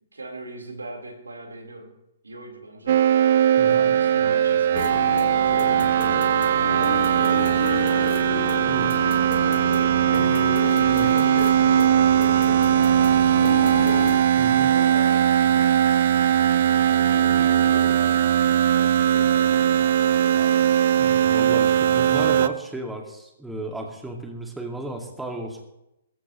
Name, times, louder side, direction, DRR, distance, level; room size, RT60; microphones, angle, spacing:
voice 1, 0.1-1.9 2.2-3.0 3.5-8.2 8.7-12.0 12.3-14.0 14.6-15.7 16.9-18.4 19.1-20.6, right 1 dB, 80° right, 1 dB, 4.1 m, -39 dB
sound 1, 2.9-22.5, right 10 dB, 50° right, 0.7 m, -19 dB
voice 2, 3.6-3.9 8.7-8.9 10.9-11.1 14.4-14.7 21.0-25.6, right 1 dB, 5° right, 1 dB, 2.2 m, -34 dB
sound 2, 4.7-14.2, left 6 dB, 55° left, 1.7 m, -31 dB
21.5 x 14.5 x 3.1 m, 0.87 s
figure-of-eight pair, 120°, 0 cm